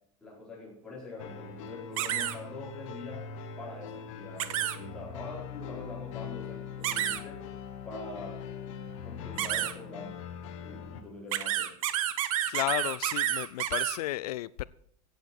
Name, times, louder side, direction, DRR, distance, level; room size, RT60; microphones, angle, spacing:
voice 1, 0.2-3.3 3.6-7.4 7.8-8.5 9.0-10.2 10.6-11.8, left 2 dB, 5° left, -7 dB, 4.8 m, -44 dB
sound 1, 1.2-11.0, left 7 dB, 55° left, 1.6 m, -42 dB
sound 2, 2.0-2.4 4.4-4.8 6.8-7.2 9.4-9.7 11.3-14.0, right 12 dB, 60° right, 1.0 m, -29 dB
voice 2, 12.5-14.6, left 15 dB, 85° left, 19 dB, 0.4 m, -33 dB
15.5 x 8.4 x 4.6 m, 0.69 s
supercardioid pair, 175°, 19 cm